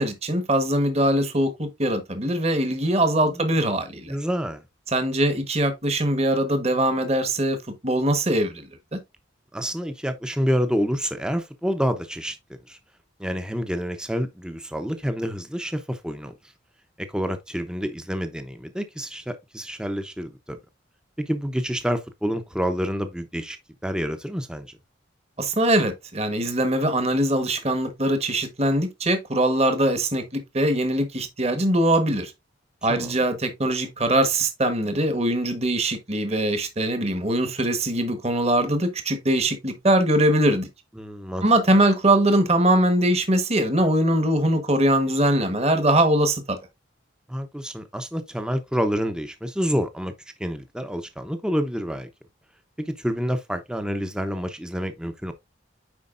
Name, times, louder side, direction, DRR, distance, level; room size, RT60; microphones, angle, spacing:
voice 1, 0.0-4.2 4.9-7.6 7.8-9.0 25.4-32.3 32.8-40.7 41.4-46.6, right 1 dB, 30° right, 1.2 m, -22 dB
voice 2, 4.1-4.6 9.5-12.4 12.7-12.8 13.2-16.3 17.0-20.6 21.2-23.6 23.8-24.7 32.9-33.2 41.0-41.5 47.3-50.1 50.4-52.1 52.8-55.3, equal, 5° right, 0.7 m, -28 dB
9.5 x 4.6 x 2.5 m
head